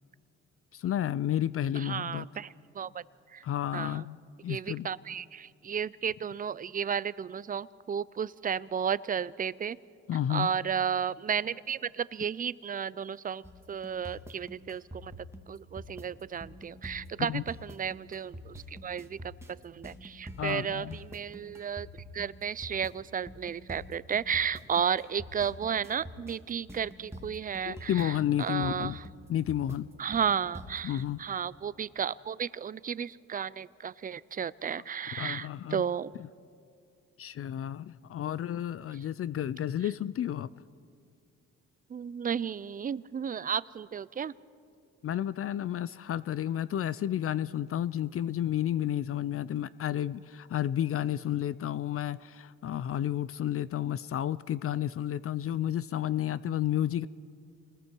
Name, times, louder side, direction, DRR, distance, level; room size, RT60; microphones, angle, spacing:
voice 1, 0.7-2.2 3.4-4.2 4.4-4.9 10.1-10.5 17.3-17.4 20.4-21.0 27.6-29.0 29.3-29.9 30.8-31.2 35.2-35.8 37.2-40.5 45.0-57.1, left 11 dB, 50° left, 17 dB, 0.5 m, -31 dB
voice 2, 1.8-3.0 3.3-3.4 3.7-4.0 4.5-9.8 10.3-15.1 15.5-21.9 22.1-29.0 30.0-36.1 41.9-44.3, right 7 dB, 30° right, 19 dB, 0.5 m, -33 dB
sound 1, 13.4-31.0, equal, 10° right, 1.9 m, -45 dB
28.5 x 20.0 x 4.6 m, 2.3 s
cardioid pair, 90°, 30 cm